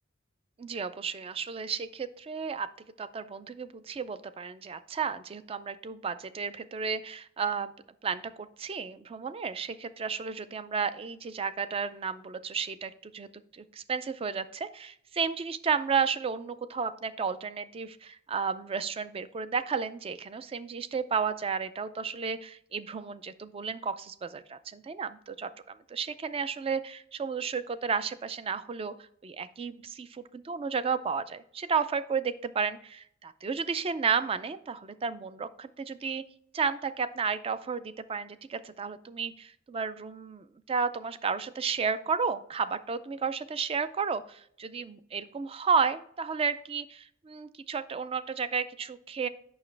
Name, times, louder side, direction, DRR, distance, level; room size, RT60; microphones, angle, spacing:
voice 1, 0.6-2.7 3.0-7.7 8.0-36.2 36.5-49.3, right 5 dB, 30° right, 13 dB, 0.3 m, -32 dB
7.1 x 5.7 x 3.2 m, 0.65 s
head